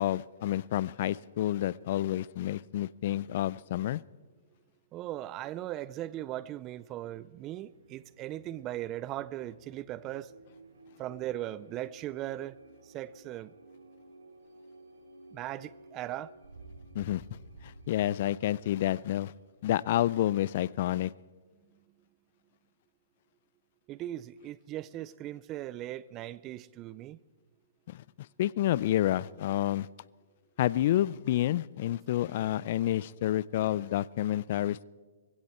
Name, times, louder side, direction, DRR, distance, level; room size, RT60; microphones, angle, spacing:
voice 1, 0.0-4.0 16.9-17.2 17.6-19.3 19.6-21.1 27.9-28.0 28.4-29.9 30.6-34.8, left 13 dB, 50° left, 0.4 m, -29 dB
voice 2, 4.9-10.3 11.0-12.6 12.9-13.5 15.3-16.3 23.9-27.2, right 14 dB, 25° right, 0.4 m, -38 dB
sound 1, 7.2-20.7, right 2 dB, 85° right, 2.5 m, -55 dB
20.5 x 16.0 x 4.3 m
hypercardioid pair, 140°, 0 cm